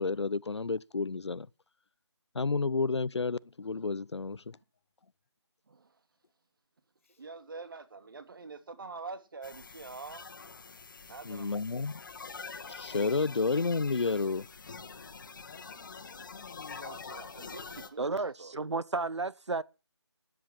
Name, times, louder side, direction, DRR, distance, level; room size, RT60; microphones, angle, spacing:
voice 1, 0.0-1.5 2.3-4.6 11.2-12.0 12.7-14.5, left 4 dB, 70° left, 0.7 m, -31 dB
voice 2, 7.2-10.3 11.1-11.5 16.8-18.5, right 4 dB, 50° right, 2.7 m, -45 dB
sound 1, 9.4-17.9, left 4 dB, 45° left, 2.0 m, -46 dB
voice 3, 15.4-17.4, left 6 dB, 30° left, 1.1 m, -53 dB
voice 4, 18.0-19.6, right 3 dB, 75° right, 1.0 m, -32 dB
13.0 x 10.5 x 7.2 m
figure-of-eight pair, 160°, 15 cm